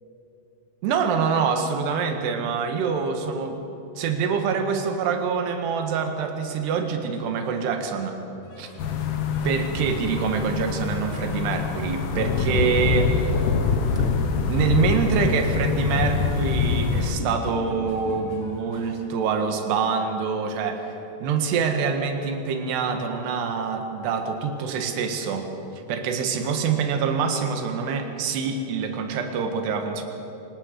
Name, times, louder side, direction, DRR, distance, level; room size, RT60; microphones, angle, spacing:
voice 1, 0.8-3.6 4.0-8.2 8.6-8.7 9.4-13.2 14.5-20.8 21.2-25.5 25.9-30.0, right 6 dB, 65° right, 5 dB, 3.4 m, -25 dB
sound 1, 8.4-19.1, equal, 50° left, 3.8 m, -39 dB
sound 2, 8.8-17.1, left 5 dB, 80° left, 3.7 m, -25 dB
24.5 x 19.0 x 6.6 m, 2.9 s
omnidirectional pair, 5.7 m